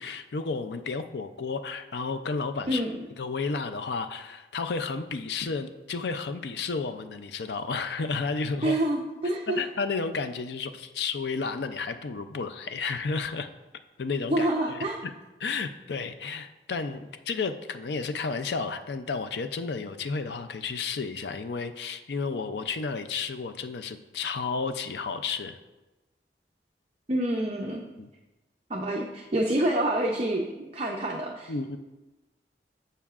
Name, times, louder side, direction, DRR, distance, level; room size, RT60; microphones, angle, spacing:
voice 1, 0.0-2.8 3.2-8.8 9.6-13.5 14.0-14.8 15.4-25.6 28.0-28.1 31.5-31.8, left 4 dB, 75° left, 10 dB, 0.5 m, -32 dB
voice 2, 2.7-3.0 8.6-9.6 14.3-15.0 27.1-27.8 28.7-31.5, right 1 dB, 35° right, 0 dB, 0.6 m, -27 dB
14.0 x 5.6 x 2.4 m, 1.1 s
head